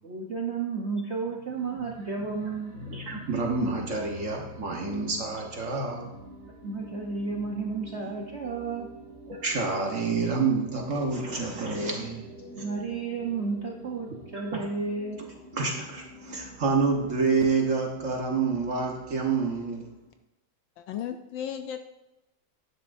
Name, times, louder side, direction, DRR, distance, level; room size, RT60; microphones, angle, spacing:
voice 1, 0.0-2.8 6.6-8.9 12.5-15.3, right 4 dB, 85° right, 0 dB, 0.6 m, -32 dB
sound 1, 1.5-20.1, equal, 65° right, 3.5 m, -47 dB
voice 2, 2.8-6.1 9.3-12.3 14.5-14.7 15.5-19.9, right 4 dB, 45° right, 0 dB, 1.2 m, -28 dB
voice 3, 20.8-21.9, left 9 dB, 75° left, 8 dB, 1.2 m, -35 dB
11.5 x 9.8 x 2.6 m, 0.97 s
omnidirectional pair, 2.4 m